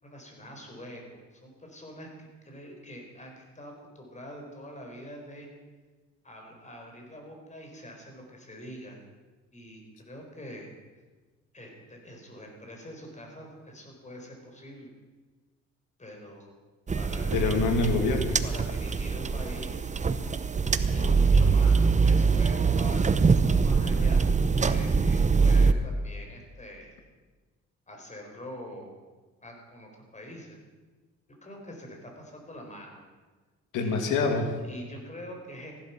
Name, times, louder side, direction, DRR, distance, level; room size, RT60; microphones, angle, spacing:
voice 1, 0.0-5.5 6.2-9.0 9.5-10.7 11.5-14.9 16.0-16.5 16.9-17.4 18.4-19.9 20.9-26.9 27.9-29.0 29.4-30.7 31.4-33.0 33.8-34.3 34.6-35.7, equal, 25° left, 1 dB, 4.3 m, -45 dB
sound 1, 16.9-25.7, right 5 dB, 25° right, 0.8 m, -23 dB
voice 2, 17.3-18.4 20.1-20.2 20.8-21.1 33.7-34.5, left 4 dB, 85° left, 5 dB, 2.1 m, -27 dB
15.5 x 11.5 x 5.9 m, 1.3 s
cardioid pair, 90°, 30 cm